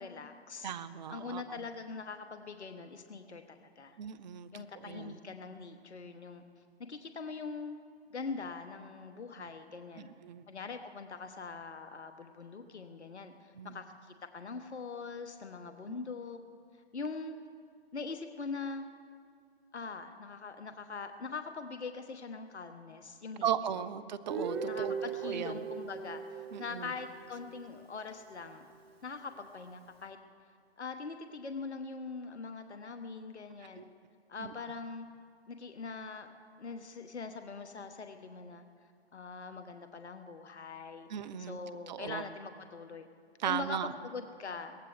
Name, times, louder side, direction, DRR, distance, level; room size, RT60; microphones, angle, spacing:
voice 1, 0.0-0.7 1.1-4.0 4.5-6.4 6.9-7.8 8.1-10.1 10.5-16.4 16.7-17.4 17.9-18.9 19.7-23.5 23.7-23.8 24.7-26.2 26.6-28.7 29.0-30.2 30.8-33.8 34.3-35.1 35.5-36.3 36.6-38.6 39.1-41.1 41.4-43.1 43.4-44.8, left 4 dB, 85° left, 7 dB, 1.2 m, -42 dB
voice 2, 0.6-1.7 4.0-5.1 9.4-9.5 10.0-10.4 13.6-13.8 15.9-16.0 23.4-24.9 25.2-25.6 26.5-26.9 33.8-33.9 34.4-34.5 41.1-41.6 41.9-42.2 43.4-43.9, right 9 dB, 45° right, 15 dB, 0.8 m, -37 dB
Guitar, 24.3-28.1, right 5 dB, 65° right, 1.8 m, -39 dB
22.5 x 18.0 x 3.3 m, 2.2 s
hypercardioid pair, 140°, 33 cm